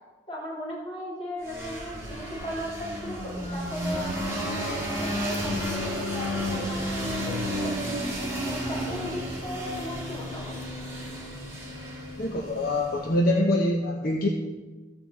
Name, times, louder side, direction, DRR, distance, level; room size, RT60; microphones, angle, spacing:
voice 1, 0.3-7.8 8.5-10.6, equal, 30° left, -5 dB, 3.4 m, -37 dB
sound 1, 1.4-13.2, equal, 15° right, 2.4 m, -32 dB
voice 2, 12.2-14.3, left 1 dB, 55° left, 0 dB, 1.0 m, -24 dB
14.0 x 5.0 x 7.3 m, 1.2 s
head